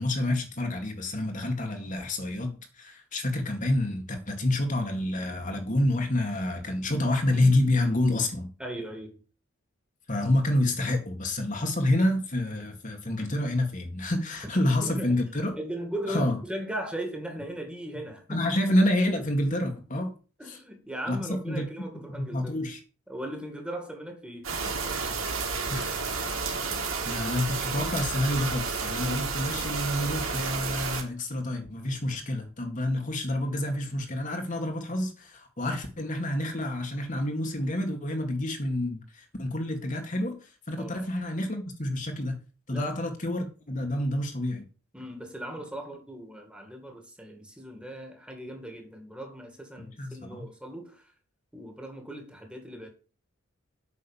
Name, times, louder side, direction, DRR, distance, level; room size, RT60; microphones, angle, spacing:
voice 1, 0.0-8.5 10.1-15.6 16.1-16.4 18.3-20.1 20.5-20.6 21.1-21.7 22.3-22.8 25.7-26.0 27.1-42.4 42.7-44.7 49.8-50.5, left 1 dB, 40° left, 2.0 m, -28 dB
voice 2, 8.6-9.2 14.8-15.2 15.6-18.4 20.4-22.7 23.1-25.2 40.8-41.1 42.7-42.9 44.9-51.1 51.5-52.9, right 1 dB, 5° right, 2.3 m, -38 dB
sound 1, 24.4-31.0, right 4 dB, 85° right, 3.4 m, -31 dB
8.6 x 6.5 x 7.3 m
head